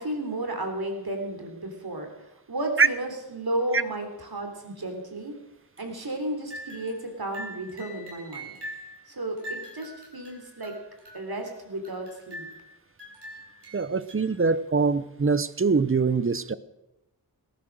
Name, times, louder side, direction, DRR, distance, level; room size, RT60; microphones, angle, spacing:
voice 1, 0.0-2.1 2.5-5.3 5.8-8.5 9.1-10.8 11.1-12.5, right 1 dB, 65° right, 3.4 m, -33 dB
sound 1, 5.8-6.2 6.5-7.1 7.3-9.0 9.4-11.5 11.8-12.7 13.0-14.4, equal, 80° right, 4.3 m, -43 dB
voice 2, 13.7-16.6, right 4 dB, 30° right, 0.7 m, -23 dB
18.0 x 11.0 x 6.5 m
wide cardioid pair, 75°, 41 cm